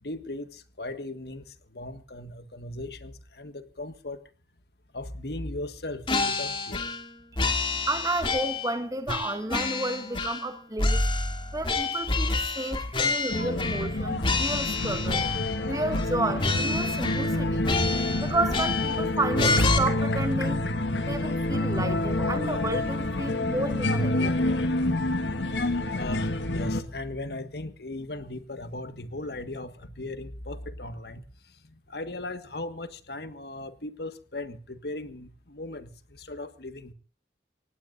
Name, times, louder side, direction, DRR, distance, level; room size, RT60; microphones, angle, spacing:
voice 1, 0.0-4.2 4.9-6.9 22.4-22.5 25.5-31.2 31.9-36.9, left 2 dB, 65° left, 1.6 m, -38 dB
sound 1, 6.1-7.1 7.4-8.7 9.1-10.5 10.8-13.9 14.2-15.6 15.9-16.1 16.4-17.4 17.6-19.0 19.4-19.8, left 3 dB, 30° left, 2.5 m, -28 dB
voice 2, 7.9-11.1 11.5-15.3 15.6-17.6 18.2-20.6 21.0-24.4, right 2 dB, 20° right, 1.8 m, -31 dB
sound 2, 13.3-26.8, left 1 dB, 85° left, 1.8 m, -28 dB
25.0 x 19.0 x 2.6 m
head